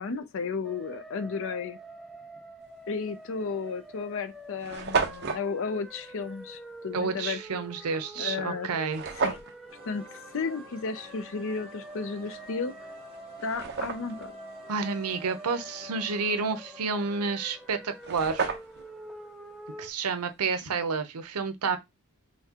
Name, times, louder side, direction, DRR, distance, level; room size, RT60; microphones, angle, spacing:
voice 1, 0.0-1.8 2.9-7.6 8.2-8.7 9.2-9.4 9.8-12.7 13.4-14.3, left 4 dB, 60° left, 0.5 m, -33 dB
sound 1, 0.6-19.9, right 1 dB, ahead, 0.3 m, -46 dB
sound 2, 3.1-3.3 4.0-4.1 4.3-4.4 4.6-5.4 8.9-9.5 12.5-12.6 13.1-14.3 17.6-17.7 17.9-18.9, right 5 dB, 50° right, 0.7 m, -31 dB
voice 2, 6.9-9.0 14.7-18.5 19.8-21.8, right 4 dB, 90° right, 0.7 m, -30 dB
sound 3, 9.7-20.3, right 1 dB, 25° right, 1.0 m, -53 dB
5.7 x 2.2 x 2.8 m
head